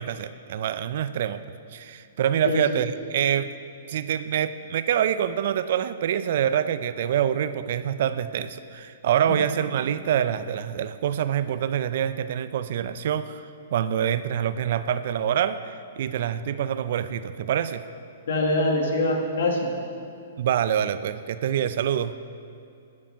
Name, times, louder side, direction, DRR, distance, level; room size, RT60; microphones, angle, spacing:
voice 1, 0.0-1.4 1.7-3.5 3.9-13.5 13.7-17.8 20.4-22.2, right 9 dB, 60° right, 13 dB, 0.5 m, -26 dB
voice 2, 2.4-2.8 9.3-9.4 18.3-19.7, left 2 dB, 70° left, 2 dB, 2.2 m, -24 dB
12.5 x 9.6 x 5.8 m, 2.5 s
hypercardioid pair, 125°, 0 cm